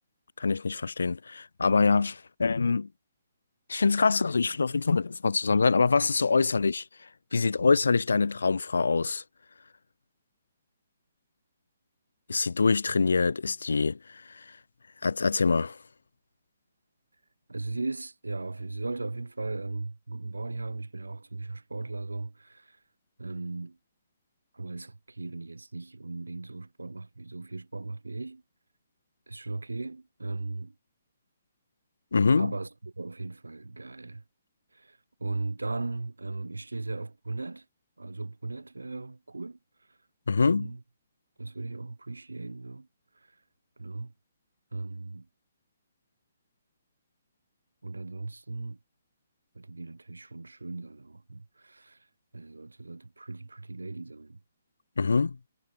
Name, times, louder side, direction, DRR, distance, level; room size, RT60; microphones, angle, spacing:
voice 1, 0.4-2.9 3.7-6.8 7.3-9.2 12.3-14.4 15.0-15.8 32.1-32.5 40.3-40.7 55.0-55.4, left 4 dB, 80° left, 0.5 m, -25 dB
voice 2, 17.5-22.8 23.2-23.8 24.5-28.4 29.3-30.7 32.4-34.2 34.7-37.6 38.0-39.6 40.4-40.8 41.4-42.9 43.8-44.1 44.7-45.3 47.8-48.8 49.5-52.0 52.3-54.4, right 3 dB, 90° right, 2.5 m, -37 dB
figure-of-eight pair, 135°, 0 cm